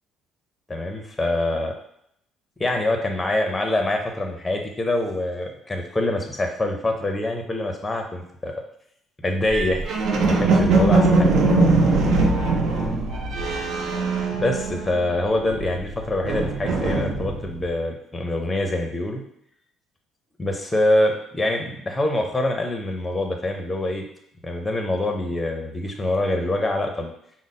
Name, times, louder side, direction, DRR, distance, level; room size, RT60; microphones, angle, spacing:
voice 1, 0.7-1.7 2.6-8.5 9.2-9.9 10.3-11.3 14.3-19.2 20.4-24.0 24.4-27.1, left 1 dB, 15° left, 3 dB, 0.6 m, -25 dB
sound 1, 9.5-15.1 15.4-17.6, right 3 dB, 60° right, 0.7 m, -21 dB
4.9 x 2.0 x 4.1 m, 0.72 s
cardioid pair, 130°, 0 cm